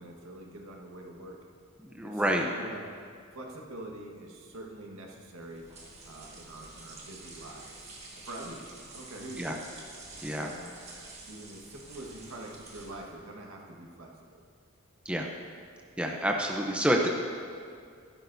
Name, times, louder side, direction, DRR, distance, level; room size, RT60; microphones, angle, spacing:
voice 1, 0.0-1.4 2.0-2.9 3.3-5.7 6.0-8.7 8.9-9.6 10.3-10.7 11.3-14.4, right 1 dB, 85° right, -1 dB, 1.5 m, -45 dB
voice 2, 1.8-2.4 9.4-9.6 10.2-10.5 15.0-15.3 16.0-17.1, right 1 dB, 5° right, 0 dB, 0.6 m, -28 dB
sound 1, 5.4-13.2, right 2 dB, 30° right, 1.7 m, -48 dB
15.0 x 12.5 x 2.7 m, 2.2 s
head